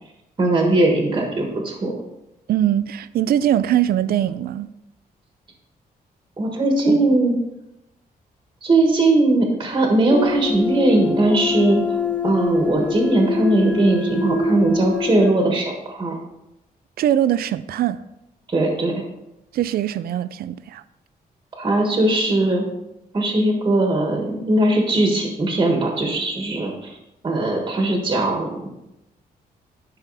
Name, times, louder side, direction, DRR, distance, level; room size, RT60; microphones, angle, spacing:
voice 1, 0.4-1.9 6.4-7.4 8.6-11.8 12.2-16.1 18.5-18.9 21.5-22.6 23.1-27.0 27.2-28.6, right 2 dB, 30° right, 1.5 m, -19 dB
voice 2, 2.5-4.7 17.0-18.0 19.5-20.8, right 11 dB, 80° right, 0.4 m, -21 dB
sound 1, 10.1-15.3, left 4 dB, 10° left, 0.7 m, -24 dB
11.5 x 5.7 x 4.1 m
wide cardioid pair, 150°, 16 cm